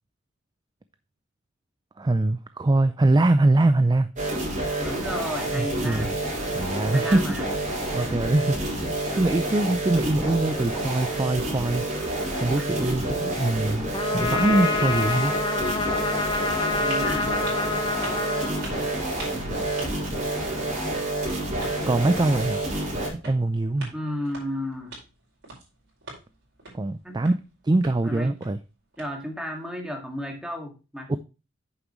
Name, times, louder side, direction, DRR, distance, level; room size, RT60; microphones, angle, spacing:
voice 1, 2.0-4.1 5.5-6.1 6.5-7.2 7.9-8.9 9.1-11.8 12.4-13.8 14.1-15.3 21.9-22.6 23.1-23.9 26.7-27.3 27.6-28.6 31.1-31.2, right 2 dB, 20° right, 0.4 m, -23 dB
sound 1, 4.2-23.1, right 1 dB, 40° right, 4.6 m, -29 dB
voice 2, 4.8-6.2 6.9-7.5 12.6-13.4 14.3-14.8 16.8-17.4 23.9-25.0 27.0-27.2 28.0-28.4 29.0-31.2, equal, 5° right, 1.9 m, -34 dB
Trumpet, 13.9-19.2, left 4 dB, 25° left, 1.0 m, -27 dB
sound 2, 15.6-29.6, right 2 dB, 55° right, 4.9 m, -46 dB
9.0 x 7.0 x 3.1 m
head